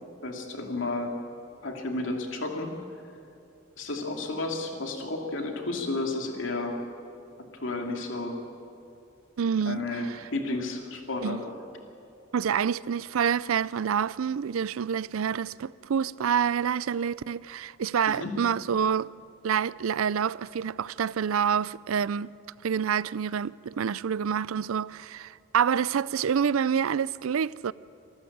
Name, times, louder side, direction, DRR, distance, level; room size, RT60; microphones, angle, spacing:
voice 1, 0.2-1.1 1.6-2.7 3.8-6.8 7.6-8.4 9.7-11.5 18.1-18.4, left 2 dB, 65° left, 2.8 m, -32 dB
voice 2, 9.4-10.1 11.2-11.4 12.3-19.1 19.4-22.3 22.6-27.7, right 7 dB, 85° right, 0.4 m, -27 dB
26.5 x 14.0 x 8.7 m
head